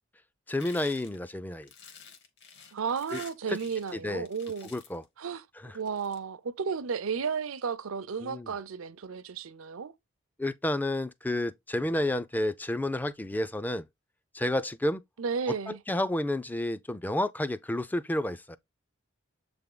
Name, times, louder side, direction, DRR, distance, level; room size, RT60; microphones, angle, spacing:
voice 1, 0.5-1.7 3.1-3.2 3.5-3.6 3.9-4.3 4.6-5.0 5.6-5.7 8.2-8.5 10.4-13.9 14.3-15.0 15.5-18.6, left 1 dB, 10° left, 0.4 m, -30 dB
sound 1, 0.6-4.0 4.2-5.0 5.7-6.2, left 6 dB, 55° left, 1.4 m, -50 dB
voice 2, 2.7-4.7 5.2-5.5 5.7-9.9 15.2-15.8, right 6 dB, 75° right, 0.6 m, -33 dB
7.4 x 3.5 x 3.8 m
head